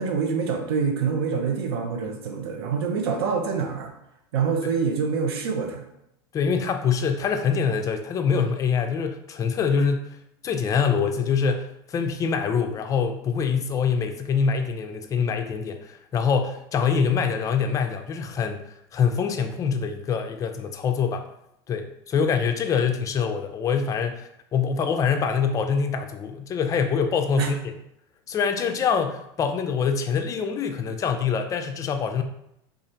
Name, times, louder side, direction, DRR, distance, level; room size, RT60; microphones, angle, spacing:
voice 1, 0.0-3.9 4.3-5.9 27.4-27.5, right 5 dB, 85° right, 4 dB, 0.6 m, -26 dB
voice 2, 6.3-10.1 10.4-18.6 18.9-21.3 21.7-27.8 28.3-32.2, left 6 dB, 25° left, 6 dB, 0.3 m, -25 dB
3.1 x 2.4 x 2.6 m, 0.79 s
supercardioid pair, 115°, 13 cm